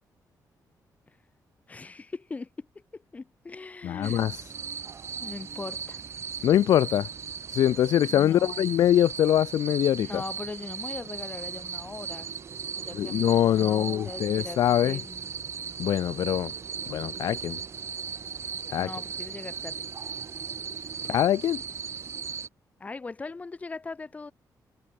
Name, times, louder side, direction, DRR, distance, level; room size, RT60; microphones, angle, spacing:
voice 1, 1.7-2.7 2.9-4.3 5.2-6.0 8.1-8.7 10.0-12.3 12.8-15.3 18.8-19.9 22.8-24.3, left 3 dB, 20° left, 2.9 m, -40 dB
voice 2, 3.8-4.3 6.4-7.1 7.5-10.2 12.9-15.0 15.8-16.5 16.9-17.6 18.7-18.9 21.1-21.6, left 11 dB, 70° left, 0.4 m, -23 dB
sound 1, 4.0-22.5, right 6 dB, 40° right, 5.7 m, -37 dB
wide cardioid pair, 170°, 7 cm